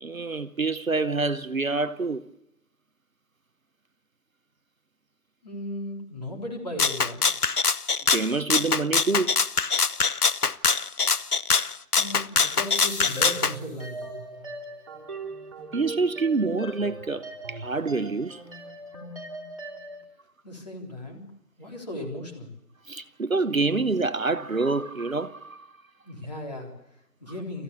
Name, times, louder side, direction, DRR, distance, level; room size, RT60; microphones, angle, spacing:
voice 1, 0.0-2.3 8.1-9.3 15.7-18.4 22.9-25.7, right 3 dB, 60° right, 0.9 m, -27 dB
voice 2, 5.4-7.2 11.9-14.0 20.4-21.2 21.6-22.5 26.0-27.6, left 1 dB, 25° left, 3.8 m, -36 dB
Rattle (instrument), 6.8-13.5, left 5 dB, 75° left, 0.9 m, -23 dB
sound 1, 12.4-14.2 16.4-16.5, left 1 dB, 50° left, 6.6 m, -42 dB
sound 2, 13.2-20.0, right 2 dB, 20° right, 3.0 m, -39 dB
29.0 x 15.0 x 6.9 m
figure-of-eight pair, 165°, 45 cm